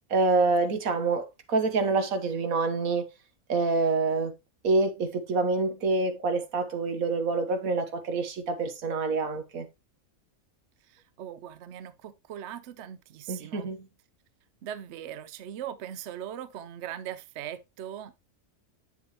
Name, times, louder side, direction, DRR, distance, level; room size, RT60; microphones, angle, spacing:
voice 1, 0.1-3.0 3.5-4.3 4.6-9.7 13.3-13.9, right 3 dB, 85° right, 1.6 m, -26 dB
voice 2, 10.9-13.7 14.6-18.2, right 10 dB, 60° right, 0.9 m, -40 dB
7.5 x 7.0 x 3.0 m
omnidirectional pair, 1.4 m